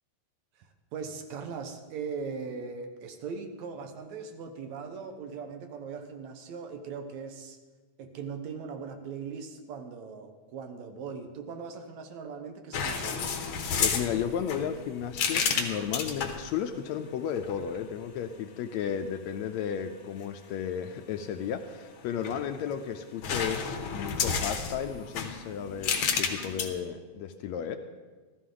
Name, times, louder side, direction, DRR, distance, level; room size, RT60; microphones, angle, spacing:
voice 1, 0.6-7.6 8.0-13.4, right 5 dB, 70° right, 6 dB, 2.2 m, -40 dB
sound 1, 12.7-16.5 17.4-17.8 22.0-22.8 23.2-26.7, left 6 dB, 65° left, 1.3 m, -31 dB
voice 2, 13.8-27.8, left 8 dB, 80° left, 8 dB, 1.7 m, -34 dB
14.5 x 14.0 x 3.8 m, 1.3 s
omnidirectional pair, 3.4 m